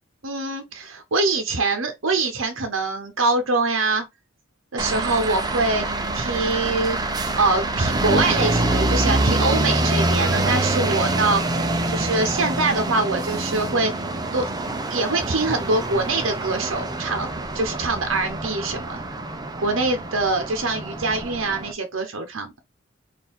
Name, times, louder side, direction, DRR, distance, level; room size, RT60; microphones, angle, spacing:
voice 1, 0.2-4.0 4.7-5.9 6.1-7.0 7.4-11.4 11.9-13.9 14.3-14.5 14.9-19.0 19.6-22.5, right 3 dB, 75° right, 0.9 m, -24 dB
sound 1, 4.8-21.7, right 2 dB, 20° right, 0.6 m, -25 dB
4.4 x 2.7 x 3.6 m
head